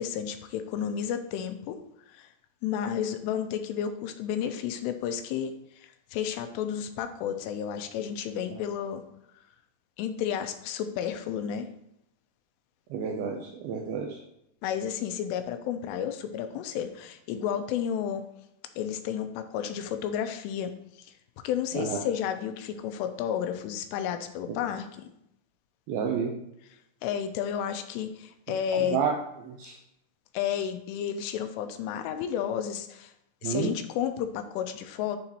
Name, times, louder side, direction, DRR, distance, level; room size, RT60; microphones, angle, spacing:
voice 1, 0.0-1.8 2.1-2.3 2.6-9.0 10.0-11.7 14.6-18.2 18.8-20.7 21.0-21.1 21.4-25.1 27.0-29.0 30.3-33.1 33.4-35.2, left 9 dB, 85° left, 8 dB, 2.7 m, -32 dB
voice 2, 12.9-14.2 21.8-22.0 24.5-24.6 25.9-26.3 28.7-29.1 29.5-29.8 33.4-33.7, right 6 dB, 85° right, 1 dB, 2.2 m, -30 dB
10.5 x 3.8 x 2.8 m, 0.78 s
omnidirectional pair, 4.9 m